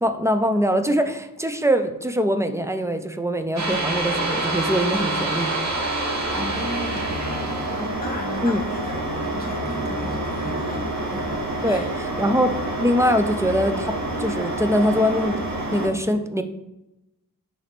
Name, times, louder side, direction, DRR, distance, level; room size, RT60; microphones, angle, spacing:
voice 1, 0.0-5.5 7.8-7.9 8.4-8.6 11.6-16.4, equal, 10° right, 8 dB, 0.4 m, -23 dB
sound 1, 3.6-15.9, right 2 dB, 55° right, 1.3 m, -27 dB
voice 2, 6.1-11.9, left 2 dB, 25° left, 0 dB, 1.6 m, -36 dB
5.0 x 3.9 x 5.9 m, 0.92 s
wide cardioid pair, 115°, 33 cm